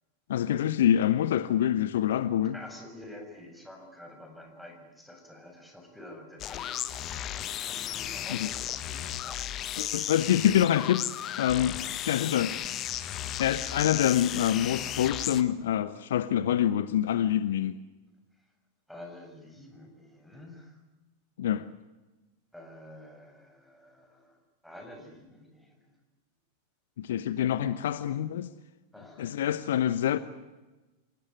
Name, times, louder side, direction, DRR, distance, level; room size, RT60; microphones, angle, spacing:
voice 1, 0.3-2.5 8.3-8.5 9.8-11.0 11.4-12.6 13.4-17.7 21.4-21.6 27.0-28.5 29.2-30.2, left 10 dB, 60° left, 1.0 m, -26 dB
voice 2, 2.5-10.1 11.5-11.9 18.4-18.5 18.9-20.8 22.5-26.0 28.9-29.4, left 1 dB, ahead, 7.2 m, -49 dB
sound 1, 6.4-15.4, left 11 dB, 30° left, 1.5 m, -35 dB
28.0 x 19.0 x 9.4 m
figure-of-eight pair, 90°, 0 cm